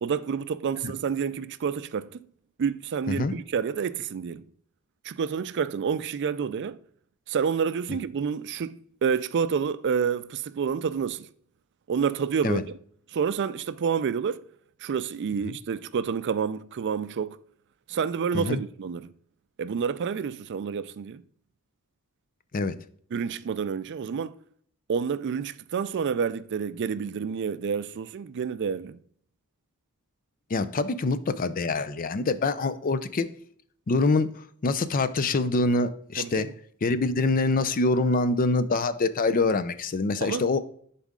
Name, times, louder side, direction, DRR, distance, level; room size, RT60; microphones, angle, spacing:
voice 1, 0.0-2.2 2.6-4.4 5.0-6.8 7.3-11.3 11.9-12.6 13.1-14.4 14.8-17.4 17.9-19.1 19.6-21.2 23.1-24.4 24.9-29.0 36.2-36.5 40.2-40.5, right 6 dB, 55° right, 0.4 m, -29 dB
voice 2, 30.5-33.3 33.9-34.3 34.6-36.5 36.8-40.6, left 3 dB, 40° left, 0.5 m, -25 dB
10.5 x 4.1 x 3.7 m
head